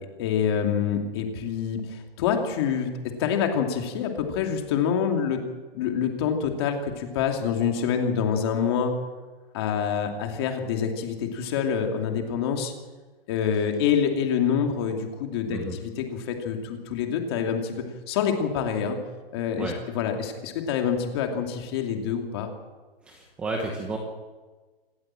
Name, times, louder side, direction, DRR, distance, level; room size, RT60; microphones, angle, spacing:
voice 1, 0.2-2.9 3.2-5.4 5.7-8.9 9.5-12.7 13.3-17.7 18.1-19.0 19.3-22.5, left 7 dB, 25° left, 3 dB, 2.6 m, -26 dB
voice 2, 23.0-24.0, right 2 dB, 5° right, 1 dB, 0.9 m, -32 dB
26.5 x 14.5 x 7.6 m, 1.3 s
hypercardioid pair, 175°, 30 cm